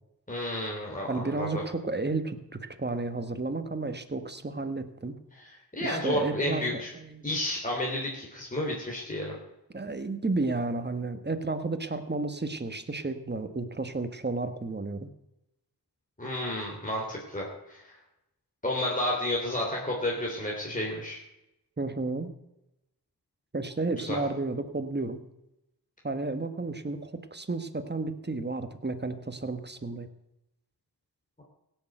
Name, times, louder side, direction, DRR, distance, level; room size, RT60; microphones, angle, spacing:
voice 1, 0.3-1.6 5.3-6.9 7.2-9.3 16.2-18.0 18.6-21.2 24.0-24.2, left 1 dB, 20° left, -2 dB, 3.2 m, -31 dB
voice 2, 1.1-5.2 5.8-7.2 9.7-15.1 21.8-22.3 23.5-25.2 26.0-30.1, right 3 dB, 25° right, 9 dB, 1.4 m, -32 dB
17.0 x 6.8 x 7.9 m, 0.90 s
cardioid pair, 60°, 41 cm